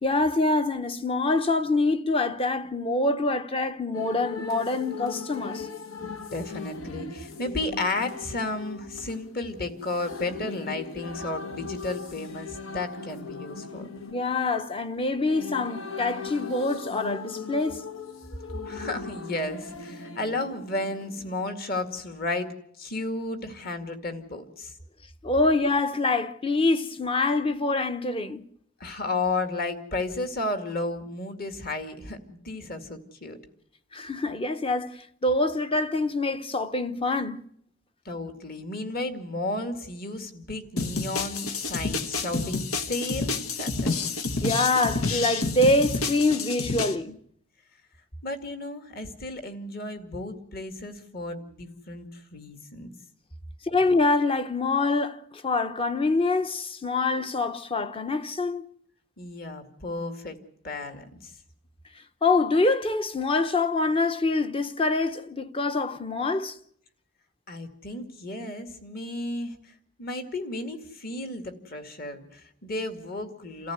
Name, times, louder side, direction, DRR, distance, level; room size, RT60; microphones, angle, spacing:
voice 1, 0.0-5.7 14.1-17.8 25.2-28.5 33.9-37.4 44.4-47.2 53.6-58.6 62.2-66.6, left 2 dB, 25° left, 0.9 m, -25 dB
sound 1, 3.9-21.5, left 4 dB, 70° left, 1.4 m, -39 dB
voice 2, 6.0-13.9 18.6-22.5 22.8-24.7 28.8-33.4 38.1-43.9 48.2-52.9 59.2-60.4 60.6-61.3 67.5-69.6 70.0-73.7, left 2 dB, 45° left, 2.3 m, -33 dB
sound 2, 40.8-47.0, left 3 dB, 90° left, 1.4 m, -29 dB
28.5 x 14.5 x 8.1 m
head